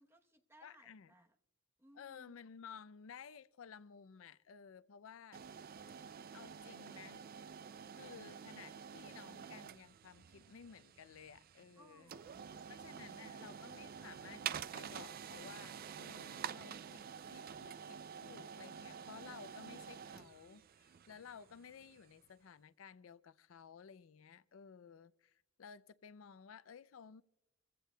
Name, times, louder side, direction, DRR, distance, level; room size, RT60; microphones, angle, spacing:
voice 1, 0.0-1.4 1.8-2.3 11.8-13.4, right 1 dB, 10° right, 1.0 m, -65 dB
voice 2, 0.6-1.1 2.0-5.4 6.3-7.2 7.9-12.1 12.7-27.2, left 7 dB, 70° left, 0.4 m, -55 dB
sound 1, 5.3-22.2, right 7 dB, 45° right, 0.4 m, -49 dB
25.5 x 15.5 x 2.2 m
head